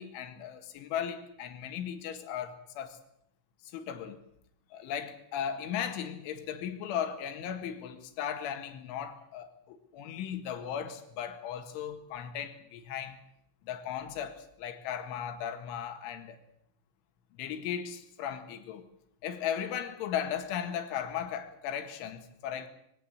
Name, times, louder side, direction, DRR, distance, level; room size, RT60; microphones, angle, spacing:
voice 1, 0.0-3.0 3.6-4.2 4.7-13.2 13.6-16.4 17.4-18.9 19.2-22.7, left 9 dB, 75° left, 4.1 m, -37 dB
23.0 x 17.5 x 8.0 m
omnidirectional pair, 5.7 m